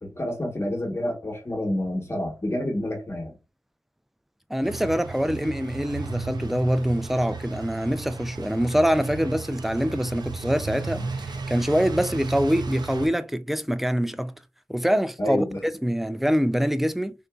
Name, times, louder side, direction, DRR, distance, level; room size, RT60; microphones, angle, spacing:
voice 1, 0.0-3.4 15.2-15.6, left 1 dB, 35° left, 1.0 m, -28 dB
voice 2, 4.5-14.3 14.7-15.4 15.8-17.1, equal, 5° right, 0.3 m, -24 dB
sound 1, 4.6-13.1, right 4 dB, 75° right, 0.4 m, -34 dB
3.7 x 2.5 x 2.2 m
wide cardioid pair, 70°, 7 cm